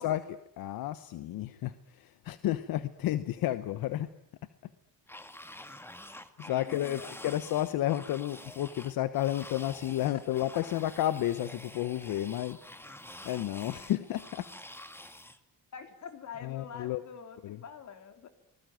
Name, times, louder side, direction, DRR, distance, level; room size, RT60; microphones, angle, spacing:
voice 1, 0.0-4.1 6.4-12.9 13.2-14.5 16.4-17.0 17.4-17.6, left 13 dB, 80° left, 13 dB, 1.1 m, -32 dB
sound 1, 5.1-15.4, left 1 dB, 5° left, 1.7 m, -48 dB
voice 2, 6.5-7.2 10.3-10.7 15.7-18.3, left 7 dB, 55° left, 8 dB, 3.7 m, -46 dB
25.5 x 20.0 x 9.3 m, 0.79 s
cardioid pair, 125°, 35 cm